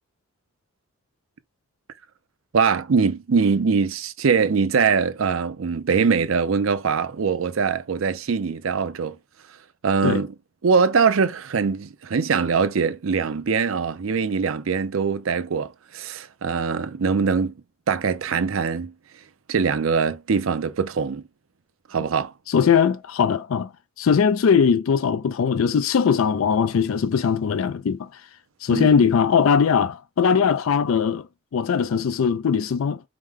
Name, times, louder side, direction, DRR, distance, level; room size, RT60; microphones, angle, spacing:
voice 1, 2.5-9.2 9.8-10.3 10.6-17.5 17.9-18.9 19.5-21.2 21.9-22.3 28.7-29.0, right 5 dB, 70° right, 0.5 m, -22 dB
voice 2, 22.5-23.7 24.0-28.2 28.6-31.3 31.5-33.0, left 6 dB, 70° left, 0.4 m, -20 dB
4.8 x 2.1 x 3.6 m
head